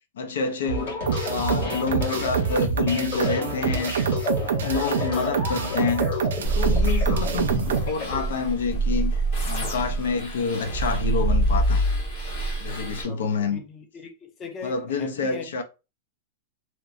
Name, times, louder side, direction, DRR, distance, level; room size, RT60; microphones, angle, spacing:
voice 1, 0.2-1.0 1.3-3.9 4.5-6.1 6.5-11.9 12.6-13.6 14.6-15.6, left 5 dB, 85° left, 0.5 m, -28 dB
sound 1, 0.6-8.2, left 1 dB, 60° left, 1.4 m, -30 dB
sound 2, 1.1-7.9, right 6 dB, 85° right, 0.4 m, -27 dB
voice 2, 5.0-5.5 13.0-15.6, left 4 dB, 15° left, 0.4 m, -40 dB
sound 3, 6.4-13.0, right 2 dB, 35° left, 1.1 m, -25 dB
2.9 x 2.1 x 2.4 m
supercardioid pair, 180°, 0 cm